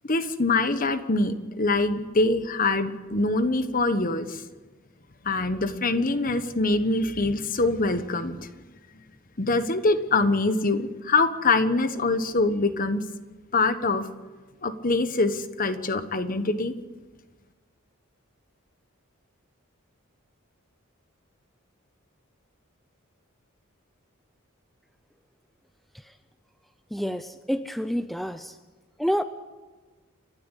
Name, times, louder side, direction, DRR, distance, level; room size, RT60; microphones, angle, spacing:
voice 1, 0.1-4.4 5.2-8.4 9.4-13.0 13.5-14.0 14.6-16.7, left 3 dB, 40° left, 11 dB, 1.2 m, -24 dB
voice 2, 26.9-28.5 29.0-29.2, equal, ahead, 10 dB, 0.5 m, -28 dB
29.0 x 12.0 x 8.2 m, 1.3 s
head